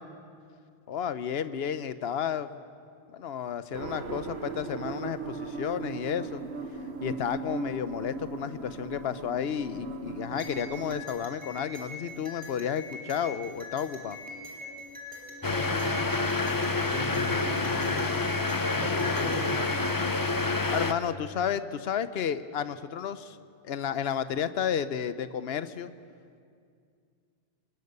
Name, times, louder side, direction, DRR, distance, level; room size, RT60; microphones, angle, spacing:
voice 1, 0.9-2.6 3.1-6.4 7.0-14.2 20.7-23.4 23.6-25.9, left 8 dB, 75° left, 13 dB, 1.0 m, -32 dB
sound 1, 3.7-11.0, right 4 dB, 85° right, 1.4 m, -38 dB
sound 2, 10.4-19.8, left 2 dB, 10° right, 3.8 m, -43 dB
voice 2, 15.4-18.2 18.7-19.9, equal, 45° left, -2 dB, 6.0 m, -38 dB
sound 3, 15.4-20.9, left 3 dB, 20° left, 0.7 m, -28 dB
25.5 x 20.0 x 6.8 m, 2.3 s
omnidirectional pair, 1.1 m